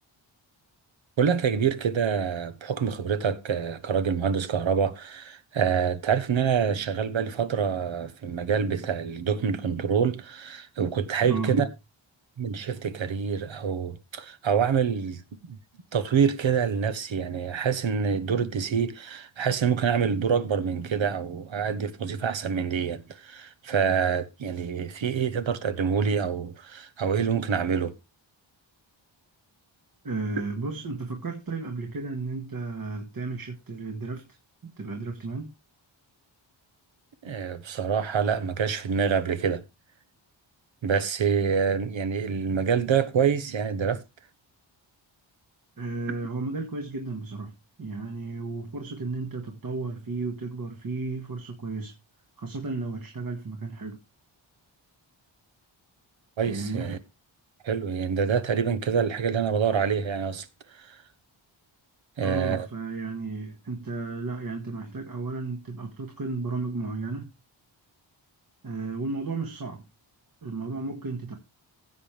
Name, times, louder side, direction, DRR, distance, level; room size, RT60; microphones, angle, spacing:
voice 1, 1.2-11.7 12.4-15.2 15.5-15.6 15.9-27.9 37.2-39.6 40.8-44.0 56.4-57.0 57.6-60.5 60.8-60.9 62.2-62.7, right 7 dB, 70° right, 1.3 m, -26 dB
voice 2, 11.2-11.7 30.0-34.4 34.6-35.5 45.8-47.5 47.8-51.9 52.4-54.0 56.5-57.0 62.2-67.3 68.6-69.8 70.4-71.4, right 3 dB, 45° right, 1.8 m, -33 dB
16.0 x 7.6 x 3.4 m
wide cardioid pair, 160°, 47 cm